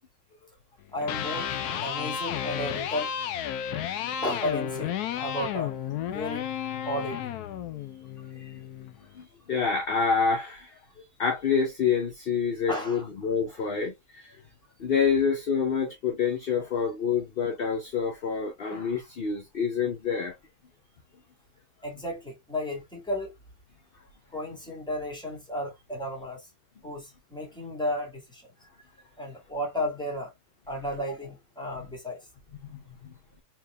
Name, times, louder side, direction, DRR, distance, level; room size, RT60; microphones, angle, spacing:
Electric guitar, 0.9-9.0, left 9 dB, 80° left, 1.1 m, -32 dB
voice 1, 0.9-1.5 1.8-3.1 4.2-5.8 6.0-6.5 6.8-7.4 12.7-13.1 13.5-13.6 18.7-18.8 21.8-23.3 24.3-26.5 26.8-28.5 29.2-30.3 30.7-32.3, left 1 dB, 5° left, 1.8 m, -33 dB
voice 2, 9.1-14.4 14.8-20.4 32.6-33.1, left 6 dB, 50° left, 0.7 m, -27 dB
4.5 x 3.5 x 2.2 m
omnidirectional pair, 1.7 m